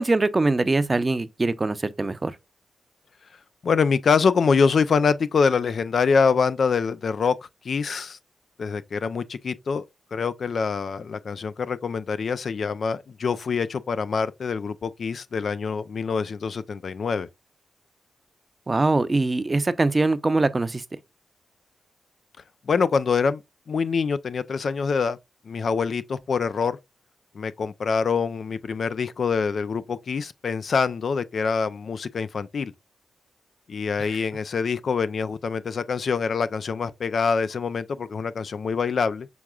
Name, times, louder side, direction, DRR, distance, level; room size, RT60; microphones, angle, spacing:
voice 1, 0.0-2.4 18.7-20.8, right 2 dB, 35° right, 0.6 m, -22 dB
voice 2, 3.6-7.4 7.6-8.2 8.6-9.8 10.1-17.3 22.7-23.4 23.7-25.2 25.5-26.8 27.3-32.7 33.7-39.3, left 5 dB, 65° left, 0.3 m, -25 dB
6.1 x 3.5 x 2.3 m
supercardioid pair, 40°, 0 cm